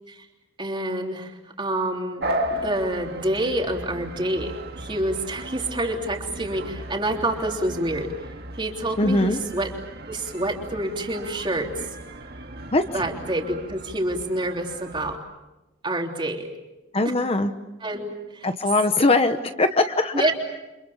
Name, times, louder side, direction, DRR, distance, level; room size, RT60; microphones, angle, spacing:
voice 1, 0.6-8.1 8.6-9.7 10.1-11.9 12.9-15.2 15.8-16.5 17.8-18.5 20.1-20.3, right 1 dB, 25° right, 2 dB, 3.4 m, -27 dB
sound 1, 2.2-15.2, right 1 dB, 55° right, 2.0 m, -36 dB
voice 2, 9.0-9.4 12.7-12.8 16.9-17.5 18.4-20.3, left 2 dB, 30° left, 8 dB, 1.0 m, -21 dB
29.5 x 26.0 x 7.2 m, 1.0 s
head